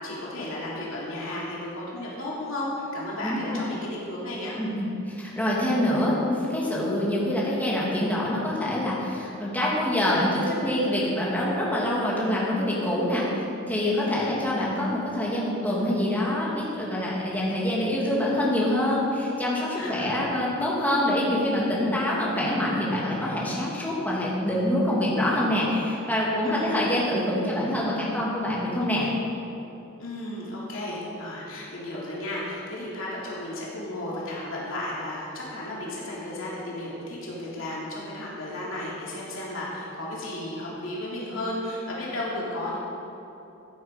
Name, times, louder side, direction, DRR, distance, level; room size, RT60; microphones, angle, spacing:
voice 1, 0.0-4.6 14.0-14.4 19.8-20.3 26.4-26.9 30.0-42.8, left 1 dB, 70° left, -6 dB, 2.9 m, -34 dB
voice 2, 3.2-3.6 4.6-29.1, left 1 dB, 10° left, -6 dB, 2.6 m, -25 dB
15.0 x 8.7 x 5.3 m, 2.8 s
head